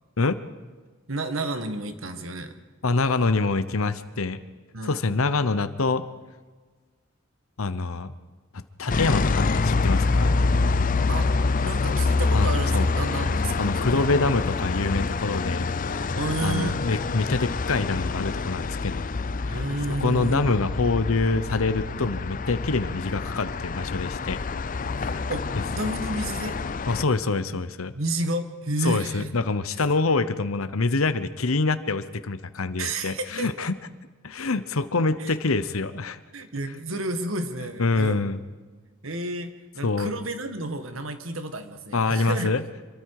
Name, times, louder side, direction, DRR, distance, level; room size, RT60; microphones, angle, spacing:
voice 1, 1.1-2.5 4.7-5.0 11.1-14.1 16.2-16.8 19.4-20.6 25.0-25.4 25.7-26.6 27.9-29.3 29.8-29.9 32.8-33.7 35.2-35.3 36.3-38.2 39.0-42.5, right 2 dB, 75° right, 8 dB, 1.8 m, -31 dB
voice 2, 2.8-4.4 4.8-6.0 7.6-8.1 8.5-10.4 12.3-12.9 13.6-15.7 16.0-16.1 16.4-19.1 19.5-19.6 20.0-24.4 25.1-25.2 25.5-25.6 26.9-27.9 28.8-33.8 34.2-36.2 37.8-38.4 39.8-40.2 41.9-42.6, left 3 dB, 85° left, 13 dB, 0.9 m, -25 dB
sound 1, 8.9-27.0, left 3 dB, 40° left, 0.6 m, -26 dB
26.5 x 23.0 x 4.9 m, 1.4 s
head